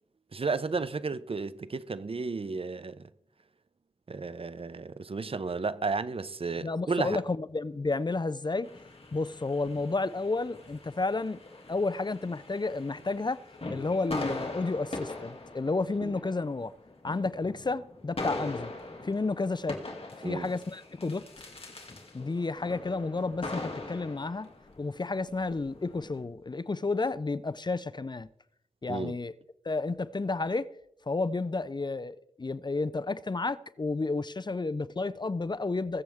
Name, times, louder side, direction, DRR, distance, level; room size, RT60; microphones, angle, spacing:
voice 1, 0.3-3.1 4.1-7.2 16.0-16.1 20.2-20.5 28.9-29.2, right 4 dB, 55° right, 0.7 m, -33 dB
voice 2, 6.6-8.7 9.1-11.4 11.7-13.4 13.7-16.7 17.0-18.7 19.0-19.8 20.2-21.3 22.1-24.5 24.8-28.3 28.8-29.3 29.6-30.7 31.1-36.0, left 3 dB, 40° left, 0.6 m, -31 dB
sound 1, 8.6-26.2, left 2 dB, 55° left, 2.5 m, -42 dB
22.0 x 7.6 x 3.6 m
cardioid pair, 50°, 12 cm